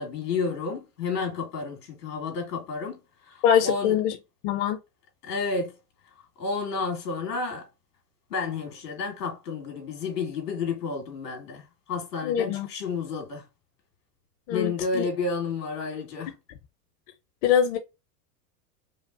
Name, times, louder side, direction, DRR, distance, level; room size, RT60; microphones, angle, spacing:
voice 1, 0.0-4.0 5.2-5.8 6.4-7.7 8.3-13.4 14.5-16.3, left 4 dB, 85° left, 2.2 m, -31 dB
voice 2, 3.4-4.2 4.4-4.8 12.2-12.7 14.5-15.0 17.4-17.8, left 9 dB, 50° left, 0.8 m, -23 dB
5.1 x 2.2 x 2.5 m
hypercardioid pair, 100°, 47 cm